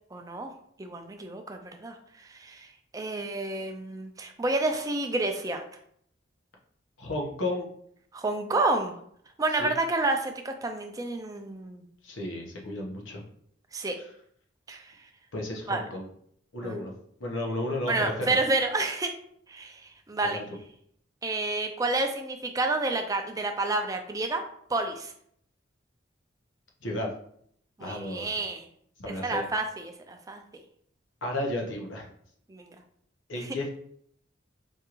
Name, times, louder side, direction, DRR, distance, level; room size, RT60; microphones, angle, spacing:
voice 1, 0.1-0.5 0.8-2.0 2.3-2.7 2.9-5.6 8.1-8.9 9.4-11.8 13.7-14.0 14.7-14.8 15.7-15.8 16.6-16.8 17.9-19.1 19.5-20.4 21.2-24.4 24.7-25.1 27.8-28.6 29.2-30.4 32.5-32.7, right 2 dB, 20° right, 5 dB, 0.4 m, -29 dB
voice 2, 7.0-7.7 9.5-9.7 12.0-13.2 14.0-14.1 15.3-16.1 16.5-16.9 17.2-18.4 20.2-20.4 26.8-27.1 27.8-28.3 29.0-29.4 31.2-32.1 33.3-33.7, left 1 dB, 90° left, -1 dB, 0.9 m, -33 dB
4.5 x 2.5 x 3.0 m, 0.66 s
head